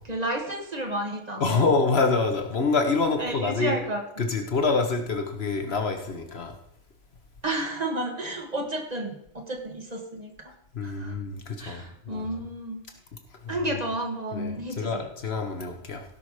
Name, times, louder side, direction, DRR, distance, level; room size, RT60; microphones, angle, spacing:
voice 1, 0.1-1.7 3.2-4.2 7.4-10.5 10.8-11.1 11.6-12.8 13.5-15.1, right 1 dB, 35° right, 2 dB, 1.8 m, -32 dB
voice 2, 1.4-3.8 4.2-6.5 10.7-12.3 13.4-13.6 14.3-16.0, left 4 dB, 60° left, 5 dB, 1.4 m, -26 dB
16.5 x 5.9 x 5.0 m, 0.71 s
omnidirectional pair, 1.2 m